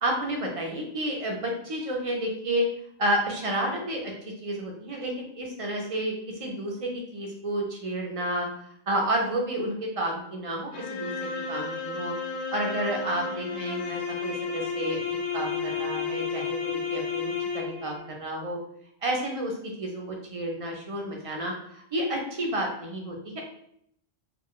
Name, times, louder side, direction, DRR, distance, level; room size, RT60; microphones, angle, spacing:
voice 1, 0.0-2.7 3.0-6.1 6.4-8.5 8.9-11.1 11.5-12.1 12.5-18.6 19.0-19.5 19.8-23.4, right 1 dB, 45° right, 0 dB, 0.5 m, -30 dB
sound 1, 10.7-18.0, left 5 dB, 50° left, 0.6 m, -32 dB
2.4 x 2.1 x 3.6 m, 0.70 s
omnidirectional pair, 1.0 m